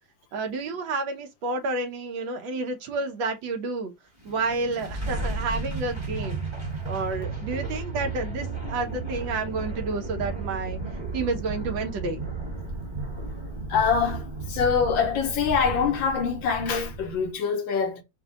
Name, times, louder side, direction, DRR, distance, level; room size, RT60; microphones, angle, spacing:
voice 1, 0.3-3.9 4.2-6.5 6.9-10.8 11.1-12.3, right 3 dB, 80° right, 1.8 m, -30 dB
sound 1, 4.2-17.3, right 3 dB, 20° right, 1.0 m, -33 dB
voice 2, 13.7-18.0, left 6 dB, 80° left, 1.7 m, -24 dB
5.3 x 2.3 x 3.8 m
omnidirectional pair, 2.1 m